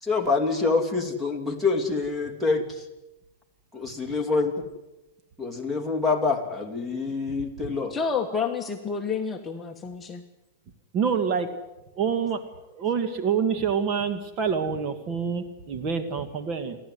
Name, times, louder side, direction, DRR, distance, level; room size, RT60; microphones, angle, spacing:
voice 1, 0.0-2.9 3.7-4.6 5.4-7.9, left 4 dB, 5° right, 5 dB, 3.0 m, -26 dB
voice 2, 7.9-10.2, left 5 dB, 15° left, 2 dB, 1.3 m, -29 dB
voice 3, 10.9-11.5 12.0-12.4 12.8-16.8, right 6 dB, 35° right, 9 dB, 1.8 m, -26 dB
29.5 x 12.0 x 9.5 m, 1.0 s
supercardioid pair, 145°, 0 cm